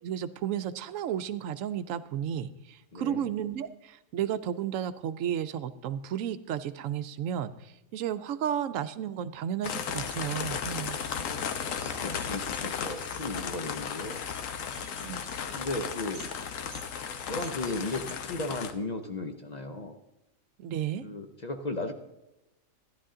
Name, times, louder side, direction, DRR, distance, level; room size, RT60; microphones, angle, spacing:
voice 1, 0.0-11.0 15.0-15.3 20.6-21.1, right 9 dB, 75° right, 13 dB, 0.9 m, -33 dB
voice 2, 2.9-3.2 11.0-14.2 15.1-15.3 15.5-16.2 17.3-20.0 21.0-21.9, left 2 dB, 40° left, 6 dB, 0.7 m, -36 dB
sound 1, 9.6-18.7, left 7 dB, 75° left, 1.2 m, -35 dB
sound 2, 9.6-18.2, right 5 dB, 40° right, 0.7 m, -51 dB
13.5 x 10.5 x 3.8 m, 0.93 s
omnidirectional pair, 1.4 m